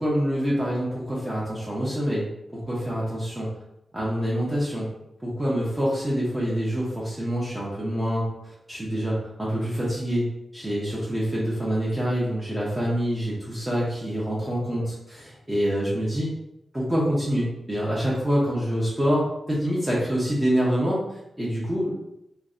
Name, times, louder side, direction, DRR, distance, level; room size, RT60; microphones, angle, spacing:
voice 1, 0.0-3.5 3.9-4.9 5.2-8.3 8.7-16.3 16.7-21.9, equal, 15° right, -6 dB, 0.6 m, -26 dB
2.5 x 2.1 x 2.4 m, 0.83 s
cardioid pair, 65°, 0 cm